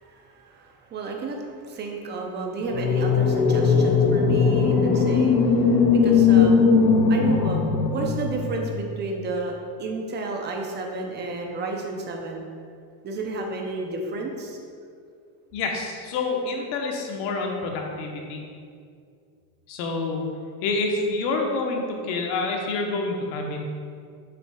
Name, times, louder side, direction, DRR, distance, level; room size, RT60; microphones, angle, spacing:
voice 1, 0.0-6.7 7.1-9.5 9.8-12.5 13.0-14.6, right 3 dB, 25° right, 1 dB, 0.6 m, -32 dB
sound 1, 2.7-8.8, left 5 dB, 35° left, 0.5 m, -19 dB
voice 2, 15.5-18.4 19.7-20.2 20.6-23.6, left 3 dB, 70° left, 1 dB, 1.1 m, -27 dB
7.2 x 6.2 x 2.3 m, 2.3 s
cardioid pair, 155°, 46 cm